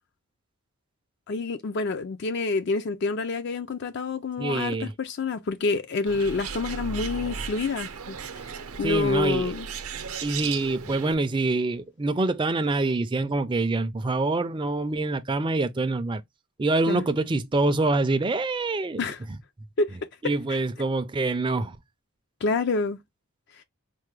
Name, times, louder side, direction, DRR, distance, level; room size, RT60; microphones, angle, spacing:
voice 1, 1.3-8.5 8.8-9.7 16.9-17.1 19.0-19.2 19.8-20.0 20.2-20.6 22.4-23.0 23.5-23.6, left 3 dB, 50° left, 0.4 m, -28 dB
voice 2, 4.4-4.9 8.8-9.5 10.2-16.2 16.6-19.0 20.2-21.8, right 2 dB, 20° right, 0.4 m, -25 dB
Bird, 6.1-11.1, right 5 dB, 75° right, 0.6 m, -36 dB
4.5 x 2.2 x 3.1 m
head